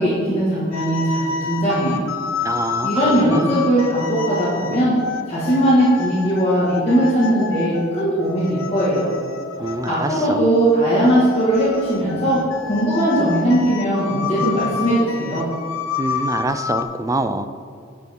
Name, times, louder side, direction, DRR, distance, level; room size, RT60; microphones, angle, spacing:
voice 1, 0.0-2.0 2.8-4.9 5.3-9.1 9.6-15.4, right 1 dB, 30° left, -10 dB, 1.9 m, -19 dB
sound 1, 0.7-10.3 11.0-16.8, left 6 dB, 75° left, 0.7 m, -29 dB
voice 2, 2.4-3.5 9.6-10.5 16.0-17.5, right 2 dB, 15° right, 10 dB, 0.3 m, -25 dB
10.5 x 7.0 x 3.7 m, 2.3 s
head